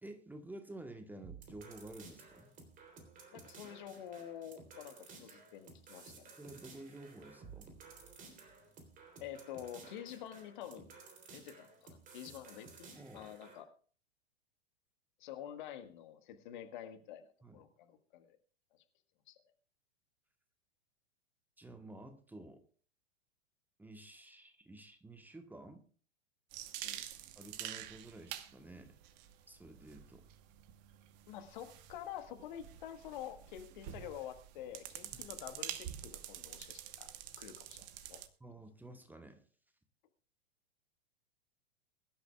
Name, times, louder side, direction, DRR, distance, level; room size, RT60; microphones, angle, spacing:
voice 1, 0.0-2.5 6.1-7.8 12.9-13.4 17.4-17.6 21.6-22.6 23.8-25.9 27.3-29.0 29.5-30.3 35.1-35.3 38.4-39.4, right 2 dB, 5° right, 7 dB, 1.2 m, -51 dB
sound 1, 1.2-13.6, right 4 dB, 25° right, 3.4 m, -55 dB
voice 2, 3.3-6.4 9.2-10.9 11.3-13.7 15.2-18.4 19.3-19.4 26.8-27.0 31.3-37.1 37.4-38.2, left 10 dB, 50° left, 8 dB, 1.6 m, -48 dB
sound 2, 26.5-38.3, right 12 dB, 40° right, 1.3 m, -48 dB
23.0 x 12.0 x 2.4 m, 0.43 s
figure-of-eight pair, 95°, 32 cm